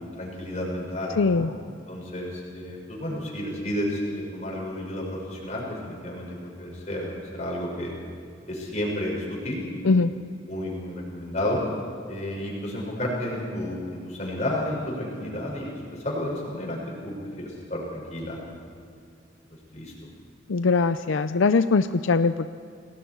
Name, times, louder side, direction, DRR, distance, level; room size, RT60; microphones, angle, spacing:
voice 1, 0.0-1.5 1.9-7.9 8.5-9.9 10.5-11.6 12.1-17.1 17.4-18.4 19.7-19.9, left 1 dB, 35° left, -2 dB, 6.4 m, -31 dB
voice 2, 1.2-1.5 9.8-10.1 20.5-22.5, left 4 dB, 85° left, 11 dB, 0.5 m, -21 dB
29.0 x 19.5 x 4.7 m, 2.4 s
head